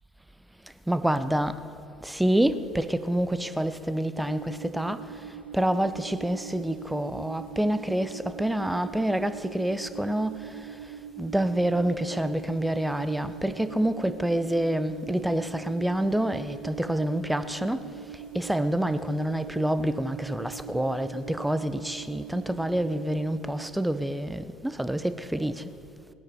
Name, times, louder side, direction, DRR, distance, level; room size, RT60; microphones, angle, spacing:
voice 1, 0.9-1.7 2.0-25.7, right 1 dB, 5° right, 0.8 m, -27 dB
sound 1, 4.1-23.7, right 8 dB, 85° right, 0.5 m, -43 dB
20.0 x 9.6 x 5.0 m
figure-of-eight pair, 60°, 0 cm